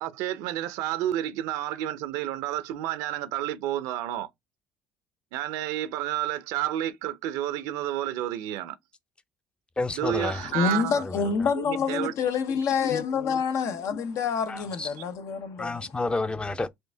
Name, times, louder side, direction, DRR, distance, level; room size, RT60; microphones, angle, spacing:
voice 1, 0.0-4.3 5.3-8.8 9.9-12.1 15.0-15.1, right 13 dB, 85° right, 0.6 m, -30 dB
voice 2, 9.8-10.4 10.9-11.1 14.5-14.9 15.6-16.7, left 3 dB, 15° left, 0.5 m, -30 dB
voice 3, 10.4-15.9, left 6 dB, 65° left, 0.6 m, -27 dB
4.5 x 2.5 x 3.4 m
supercardioid pair, 85°, 6 cm